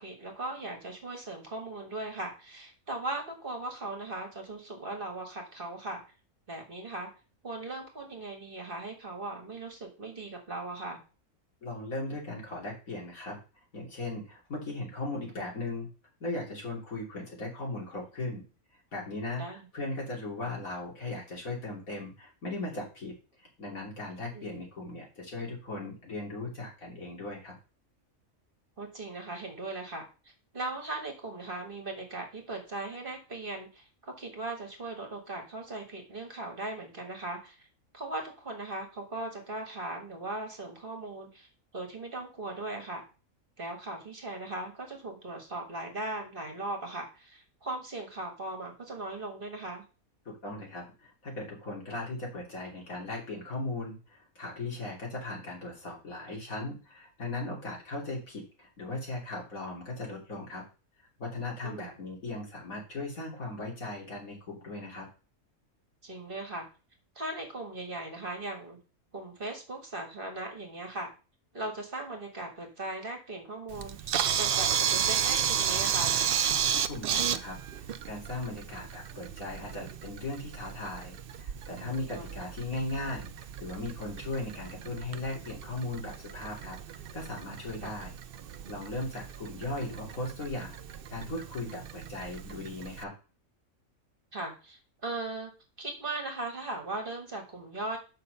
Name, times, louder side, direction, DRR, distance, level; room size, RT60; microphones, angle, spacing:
voice 1, 0.0-6.0 6.5-7.1 7.4-11.0 19.4-19.7 24.3-24.5 28.8-30.0 30.5-37.7 37.9-43.0 43.6-49.8 61.6-62.0 66.0-66.7 67.2-68.8 69.1-71.1 71.5-76.2 82.1-82.4 87.8-87.9 94.3-95.5 95.8-98.0, right 2 dB, 40° right, 2 dB, 1.8 m, -38 dB
voice 2, 11.6-13.4 13.7-15.9 16.2-18.4 18.9-27.5 50.2-60.6 61.2-65.1 76.7-88.1 88.7-93.1, left 2 dB, 75° left, -2 dB, 3.4 m, -38 dB
Camera, 73.7-93.0, right 9 dB, 60° right, 0.6 m, -33 dB
5.8 x 5.6 x 6.6 m, 0.33 s
omnidirectional pair, 1.5 m